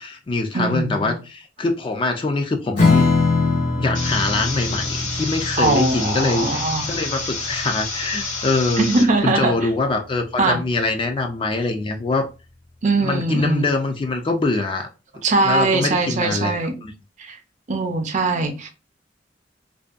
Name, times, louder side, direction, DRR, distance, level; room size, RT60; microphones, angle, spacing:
voice 1, 0.0-3.1 3.8-12.3 13.0-14.9 15.4-16.9, left 3 dB, 30° left, 0.4 m, -24 dB
voice 2, 0.5-1.1 5.6-7.0 8.8-9.5 10.4-10.6 12.8-13.7 15.2-16.7 17.2-17.4 17.7-18.7, right 3 dB, 40° right, 0.5 m, -21 dB
Strum, 2.8-9.6, left 3 dB, 75° left, 1.1 m, -23 dB
sound 1, 3.9-9.0, left 3 dB, 45° left, 0.8 m, -29 dB
2.5 x 2.2 x 2.4 m
head